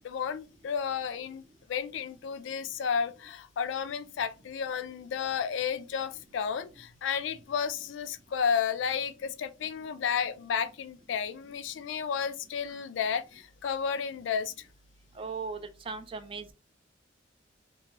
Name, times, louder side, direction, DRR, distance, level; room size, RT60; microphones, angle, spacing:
voice 1, 0.0-1.4 1.7-14.5, left 7 dB, 85° left, 0.3 m, -32 dB
voice 2, 15.2-15.6 15.9-16.5, right 4 dB, 30° right, 0.3 m, -37 dB
2.9 x 2.6 x 2.7 m
head